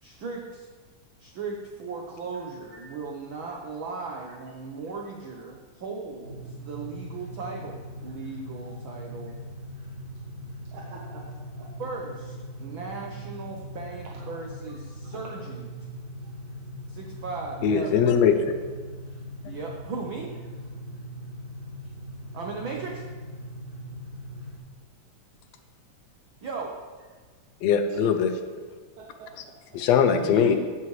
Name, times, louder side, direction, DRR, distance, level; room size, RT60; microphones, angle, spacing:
voice 1, 0.0-0.7 1.2-9.4 11.8-15.6 16.9-18.0 19.4-20.3 22.3-23.0 26.4-26.8 30.1-30.6, right 4 dB, 90° right, 0 dB, 1.1 m, -37 dB
sound 1, 6.2-24.6, equal, 45° right, 3.5 m, -40 dB
voice 2, 10.7-11.7 14.1-14.4 15.0-15.2 20.1-20.3 20.7-20.8 27.9-28.0 29.0-29.6, right 3 dB, 75° right, -3 dB, 2.5 m, -48 dB
voice 3, 17.6-18.6 19.4-19.5 27.6-28.4 29.7-30.6, left 7 dB, 75° left, 8 dB, 1.6 m, -21 dB
15.0 x 7.2 x 3.2 m, 1.5 s
omnidirectional pair, 3.5 m